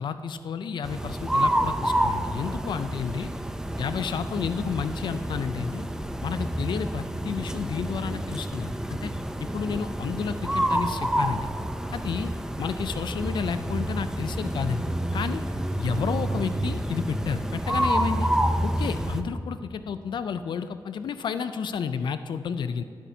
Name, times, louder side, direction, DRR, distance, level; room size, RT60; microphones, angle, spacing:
voice 1, 0.0-3.3 3.8-5.8 6.2-9.1 9.5-11.5 11.9-12.3 12.6-14.9 15.1-15.4 15.8-18.3 18.6-22.8, left 6 dB, 85° left, 11 dB, 0.3 m, -31 dB
sound 1, 0.8-19.2, right 1 dB, 10° right, 0.4 m, -28 dB
15.5 x 8.4 x 2.7 m, 2.5 s
wide cardioid pair, 130°, 8 cm